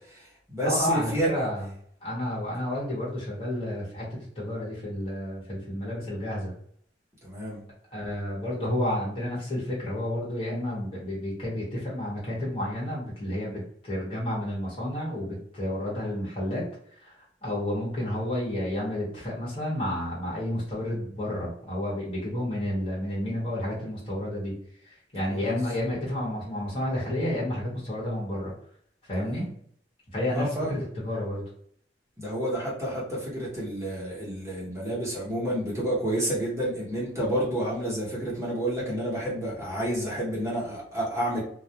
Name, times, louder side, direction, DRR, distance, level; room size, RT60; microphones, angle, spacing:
voice 1, 0.1-1.3 7.2-7.6 25.3-25.5 29.1-29.5 30.3-30.8 32.2-41.4, right 1 dB, 15° right, -7 dB, 0.8 m, -30 dB
voice 2, 0.6-1.7 2.0-6.5 7.9-24.5 24.8-28.5 29.1-29.5 30.1-31.4, left 1 dB, 30° left, -5 dB, 1.0 m, -31 dB
2.3 x 2.1 x 2.7 m, 0.65 s
head